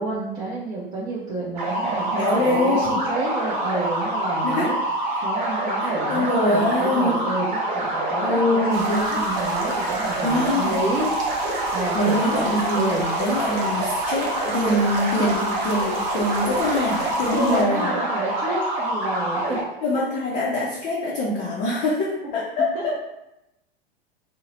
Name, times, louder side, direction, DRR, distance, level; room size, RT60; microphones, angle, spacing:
voice 1, 0.0-4.7 5.2-13.1 15.2-15.3 17.3-19.6 22.7-22.8, right 1 dB, 25° right, -6 dB, 0.6 m, -30 dB
sound 1, 1.6-19.6, right 2 dB, 50° right, 0.9 m, -26 dB
voice 2, 2.1-3.1 4.4-4.8 5.1-5.2 5.8-7.2 8.2-9.2 10.2-10.8 11.9-18.0 19.8-23.0, left 1 dB, 25° left, -4 dB, 0.5 m, -24 dB
sound 2, 8.7-17.6, right 2 dB, 70° right, 0.7 m, -36 dB
2.6 x 2.0 x 2.9 m, 0.90 s
figure-of-eight pair, 95°, 31 cm